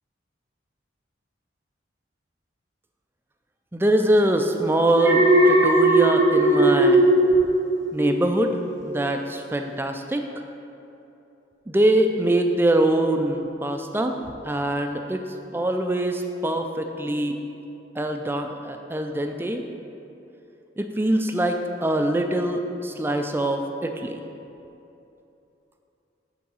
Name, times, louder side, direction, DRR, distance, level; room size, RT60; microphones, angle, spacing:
voice 1, 3.7-7.1 7.9-8.6 8.8-10.3 11.7-14.2 14.4-17.4 18.0-19.6 20.8-24.2, right 1 dB, 10° right, 5 dB, 0.3 m, -23 dB
Alarm, 4.9-8.3 8.6-9.0, right 1 dB, 80° right, 1.0 m, -18 dB
8.5 x 3.8 x 5.5 m, 2.9 s
head